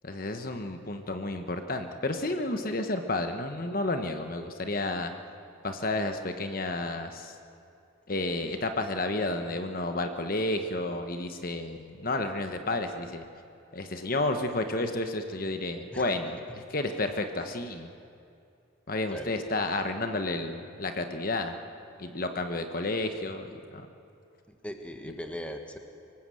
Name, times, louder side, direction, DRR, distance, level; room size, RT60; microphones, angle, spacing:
voice 1, 0.0-5.1 5.6-7.3 8.1-13.2 13.7-16.4 16.7-17.9 18.9-21.6 22.0-23.9, left 2 dB, 45° left, 6 dB, 1.1 m, -31 dB
voice 2, 24.5-25.8, equal, 5° left, 5 dB, 1.3 m, -39 dB
25.5 x 18.5 x 7.7 m, 2.5 s
head